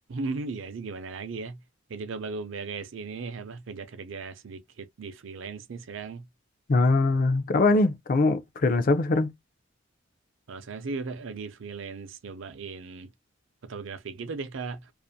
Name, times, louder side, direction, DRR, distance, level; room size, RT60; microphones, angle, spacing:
voice 1, 0.1-1.6 1.9-6.2 10.5-13.1 13.6-14.8, right 4 dB, 70° right, 0.5 m, -37 dB
voice 2, 6.7-9.3, left 3 dB, 40° left, 0.4 m, -22 dB
2.4 x 2.4 x 2.6 m
head